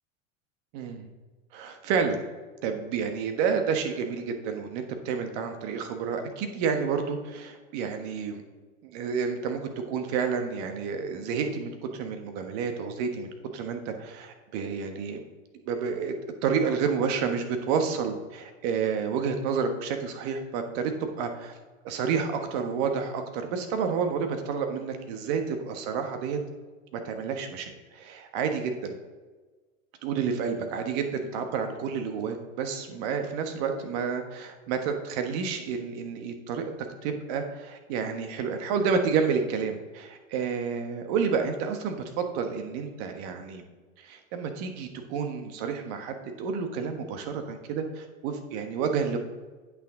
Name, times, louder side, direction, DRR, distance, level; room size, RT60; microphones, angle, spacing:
voice 1, 0.7-1.1 1.5-2.2 2.6-8.4 8.8-15.2 15.6-16.1 16.4-21.6 21.8-26.4 26.9-29.0 30.0-36.6 37.0-43.6 44.0-49.2, right 6 dB, 55° right, 6 dB, 1.3 m, -30 dB
8.7 x 6.1 x 3.8 m, 1.3 s
hypercardioid pair, 95°, 40 cm